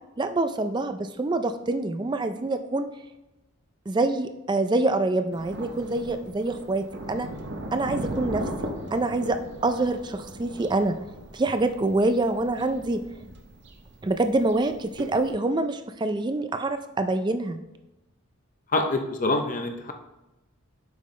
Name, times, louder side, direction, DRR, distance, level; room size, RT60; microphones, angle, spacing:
voice 1, 0.2-2.9 3.9-7.3 7.7-8.4 8.9-11.0 11.3-13.0 14.0-17.6, right 2 dB, 20° right, 9 dB, 0.3 m, -26 dB
Thunder, 5.3-15.3, right 1 dB, 50° right, 0.8 m, -38 dB
voice 2, 18.7-19.9, left 2 dB, 35° left, 5 dB, 0.5 m, -25 dB
7.7 x 5.5 x 3.1 m, 1.0 s
head